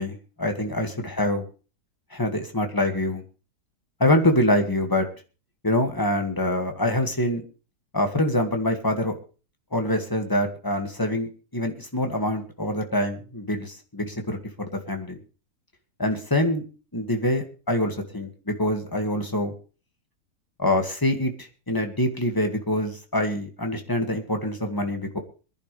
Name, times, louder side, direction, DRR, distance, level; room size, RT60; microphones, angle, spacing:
voice 1, 0.0-1.5 2.1-3.2 4.0-5.1 5.6-7.4 7.9-9.2 9.7-15.2 16.0-16.6 16.9-19.5 20.6-25.2, left 1 dB, 15° left, 4 dB, 1.9 m, -25 dB
23.5 x 10.5 x 3.3 m, 0.36 s
omnidirectional pair, 1.8 m